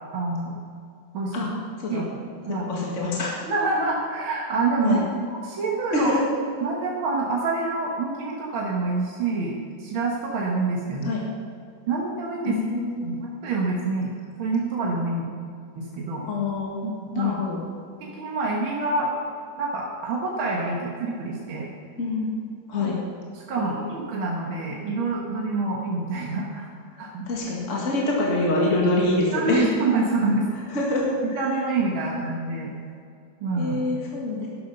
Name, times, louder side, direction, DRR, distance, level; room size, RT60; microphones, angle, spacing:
voice 1, 0.1-0.6 1.1-1.5 1.9-2.2 2.5-2.7 3.5-5.0 5.4-6.1 6.6-11.2 11.9-12.6 13.0-15.4 15.8-16.3 16.8-17.4 18.1-19.1 19.6-21.7 23.5-26.7 27.0-27.3 29.3-30.5 31.4-32.7 33.4-33.8, right 3 dB, 80° right, -3 dB, 2.2 m, -26 dB
voice 2, 2.7-3.3 4.8-5.0 5.9-6.2 11.0-11.3 12.5-13.1 16.3-16.8 17.1-17.6 22.0-22.3 22.7-23.0 23.5-24.0 26.9-29.7 30.7-31.6 32.0-32.3 33.6-34.5, left 2 dB, 40° left, -4 dB, 2.2 m, -26 dB
12.5 x 11.5 x 5.4 m, 2.4 s
omnidirectional pair, 2.2 m